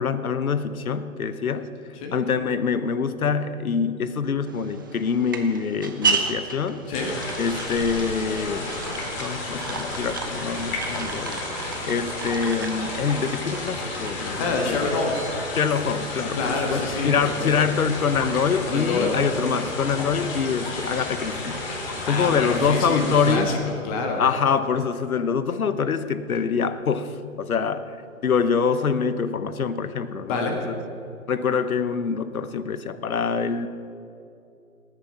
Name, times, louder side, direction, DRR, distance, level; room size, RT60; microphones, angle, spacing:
voice 1, 0.0-1.7 2.1-6.8 7.4-8.8 9.2-11.4 11.8-14.8 15.6-21.7 22.0-23.5 24.2-28.0 28.2-30.8 31.3-33.7, left 6 dB, 75° left, 13 dB, 1.1 m, -25 dB
sound 1, 4.5-15.7, right 4 dB, 15° right, 0.4 m, -33 dB
sound 2, 6.9-23.4, left 2 dB, 40° left, 4.1 m, -32 dB
voice 2, 14.4-15.3 16.3-17.5 18.7-19.6 22.0-24.2 30.3-30.6, left 3 dB, 25° left, 2 dB, 1.6 m, -27 dB
19.5 x 9.2 x 5.8 m, 2.7 s
hypercardioid pair, 140°, 42 cm